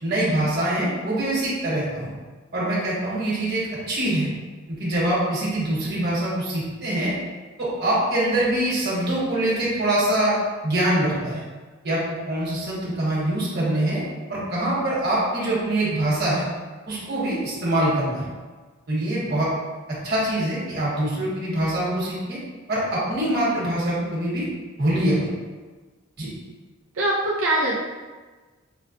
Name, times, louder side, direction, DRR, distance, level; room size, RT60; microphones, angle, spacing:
voice 1, 0.0-2.1 2.5-4.3 4.7-7.1 7.6-10.4 10.6-11.4 11.8-14.0 14.3-16.5 16.9-18.3 18.9-19.5 20.0-22.4 22.7-24.4 24.8-25.3 26.2-26.3, right 1 dB, 55° right, -7 dB, 1.3 m, -24 dB
voice 2, 26.9-27.8, right 1 dB, 90° right, -7 dB, 0.6 m, -22 dB
5.3 x 2.1 x 2.7 m, 1.3 s
head